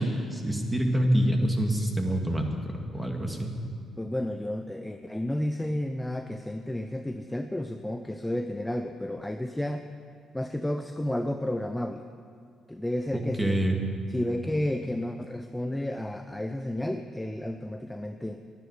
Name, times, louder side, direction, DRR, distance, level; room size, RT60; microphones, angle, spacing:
voice 1, 0.0-3.5 13.4-13.8, equal, 10° right, 2 dB, 2.3 m, -26 dB
voice 2, 4.0-9.9 10.3-12.0 12.7-13.6 14.1-18.4, left 1 dB, 10° left, 6 dB, 0.7 m, -32 dB
12.0 x 11.0 x 10.0 m, 2.2 s
cardioid pair, 90°, 0 cm